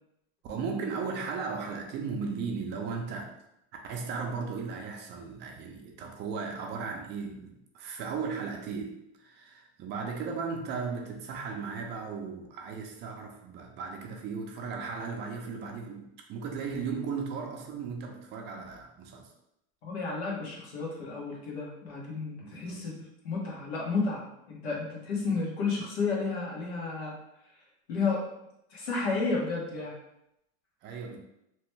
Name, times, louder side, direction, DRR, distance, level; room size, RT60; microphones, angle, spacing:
voice 1, 0.4-3.3 3.8-19.3 22.4-22.8 30.8-31.2, right 5 dB, 35° right, 2 dB, 0.5 m, -36 dB
voice 2, 19.8-23.0 23.2-27.2 27.9-28.2 28.7-29.9, left 4 dB, 85° left, -3 dB, 1.2 m, -32 dB
2.9 x 2.2 x 3.1 m, 0.82 s
supercardioid pair, 130°, 31 cm